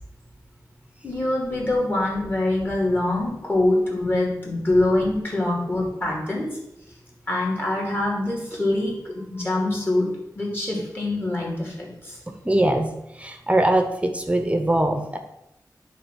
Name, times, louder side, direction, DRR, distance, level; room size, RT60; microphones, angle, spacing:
voice 1, 1.0-6.5 7.3-10.1 10.3-12.2, left 2 dB, 30° left, -2 dB, 2.7 m, -24 dB
voice 2, 12.3-15.2, right 1 dB, 20° right, 6 dB, 0.8 m, -22 dB
10.0 x 3.4 x 6.3 m, 0.85 s
wide cardioid pair, 110°, 7 cm